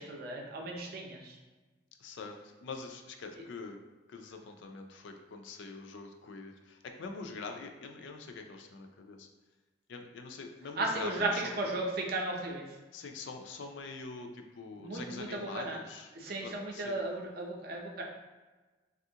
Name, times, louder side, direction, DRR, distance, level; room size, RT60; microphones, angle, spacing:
voice 1, 0.0-1.4 3.3-3.4 10.8-12.8 14.7-15.8 16.1-18.0, right 2 dB, 50° right, 0 dB, 0.5 m, -35 dB
voice 2, 2.0-3.8 4.1-9.3 9.9-11.5 12.9-16.1 16.4-17.0, left 4 dB, 65° left, 4 dB, 0.4 m, -44 dB
3.4 x 2.4 x 2.7 m, 1.2 s
head